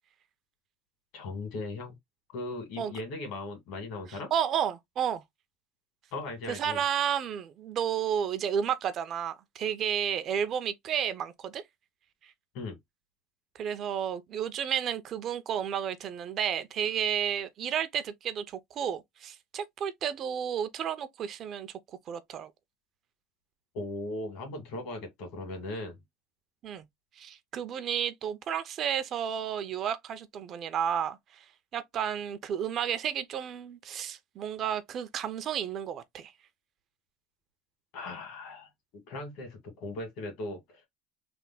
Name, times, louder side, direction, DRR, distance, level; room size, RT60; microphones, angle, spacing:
voice 1, 1.1-1.9 2.3-4.3 6.1-6.8 12.5-12.8 23.7-26.0 37.9-40.8, left 2 dB, 65° left, 1.8 m, -38 dB
voice 2, 4.1-5.2 6.5-11.6 12.2-12.3 13.5-21.7 22.1-22.5 26.6-26.8 27.2-31.4 31.7-36.3, right 8 dB, 45° right, 0.5 m, -32 dB
3.4 x 2.1 x 3.8 m
cardioid pair, 130°, 0 cm